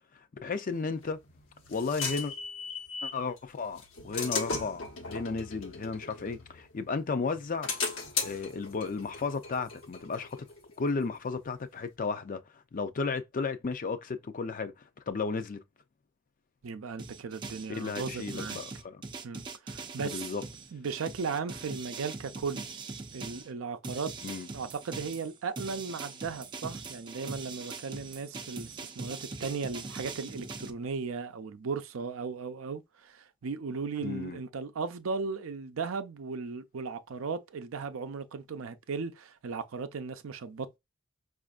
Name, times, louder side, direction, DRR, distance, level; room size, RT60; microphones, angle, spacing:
voice 1, 0.4-1.2 1.7-2.3 3.0-7.7 8.2-10.5 10.8-15.6 17.7-19.0 20.0-20.4 24.2-24.5 34.0-34.4, left 4 dB, 40° left, 0.5 m, -34 dB
sound 1, 1.0-3.2 3.8-6.9 7.3-10.7, left 4 dB, 80° left, 1.0 m, -37 dB
voice 2, 16.6-18.6 19.2-20.3 20.7-22.7 23.1-24.1 24.5-40.8, right 5 dB, 85° right, 0.5 m, -36 dB
sound 2, 17.0-23.5 23.8-30.7, right 3 dB, 25° right, 0.5 m, -42 dB
5.0 x 2.5 x 2.4 m
head